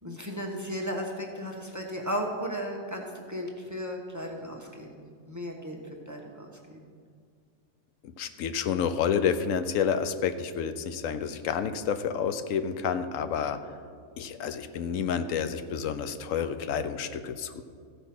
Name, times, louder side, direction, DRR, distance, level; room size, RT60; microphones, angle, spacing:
voice 1, 0.0-5.8 6.1-6.9, equal, 15° right, 1 dB, 0.9 m, -35 dB
voice 2, 8.0-13.6 14.2-17.6, left 7 dB, 85° left, 10 dB, 1.0 m, -29 dB
14.5 x 5.0 x 5.9 m, 2.1 s
omnidirectional pair, 1.3 m